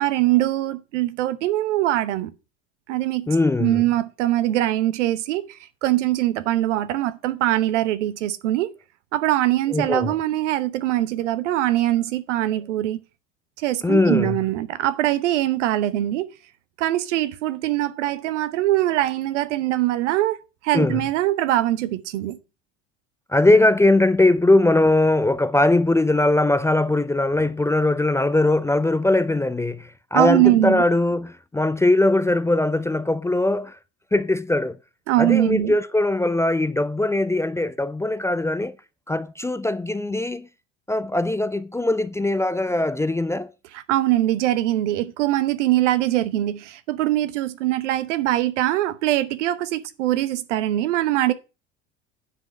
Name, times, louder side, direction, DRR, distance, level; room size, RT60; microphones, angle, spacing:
voice 1, 0.0-2.3 2.9-3.3 3.6-8.7 9.1-13.0 13.6-16.3 16.8-20.4 20.6-22.4 30.1-30.8 35.1-35.7 43.7-51.3, right 14 dB, 70° right, 0.9 m, -22 dB
voice 2, 3.3-3.8 9.7-10.1 13.8-14.4 20.7-21.0 23.3-33.8 34.1-34.8 35.2-38.8 39.1-40.5 40.9-43.5, left 2 dB, 10° left, 0.4 m, -20 dB
9.5 x 5.2 x 5.9 m
hypercardioid pair, 70°, 37 cm